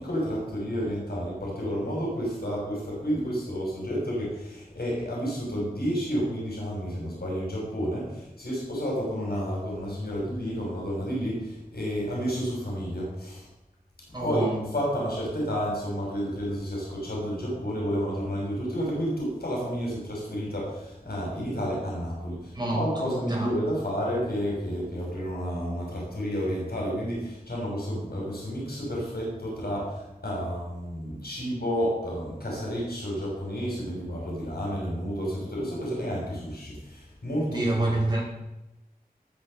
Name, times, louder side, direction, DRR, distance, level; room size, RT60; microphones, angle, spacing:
voice 1, 0.0-13.4 14.2-37.7, equal, 90° left, -4 dB, 6.7 m, -30 dB
voice 2, 14.1-14.6 22.5-23.5 37.5-38.2, right 2 dB, 25° right, -3 dB, 5.8 m, -28 dB
19.0 x 6.6 x 6.8 m, 0.95 s
wide cardioid pair, 60°, 16 cm